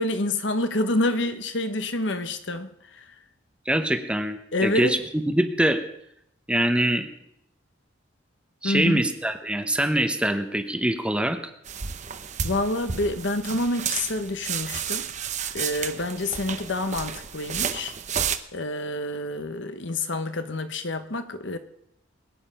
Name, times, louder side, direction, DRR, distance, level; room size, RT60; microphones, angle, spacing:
voice 1, 0.0-3.0 4.5-4.9 8.6-9.0 12.4-15.1 15.5-17.9 18.5-21.6, left 1 dB, 65° left, 1.2 m, -27 dB
voice 2, 3.7-5.8 6.5-7.1 8.6-11.4, right 1 dB, 5° right, 0.9 m, -24 dB
sound 1, 11.6-18.4, right 7 dB, 35° right, 0.8 m, -31 dB
21.5 x 9.8 x 5.7 m
head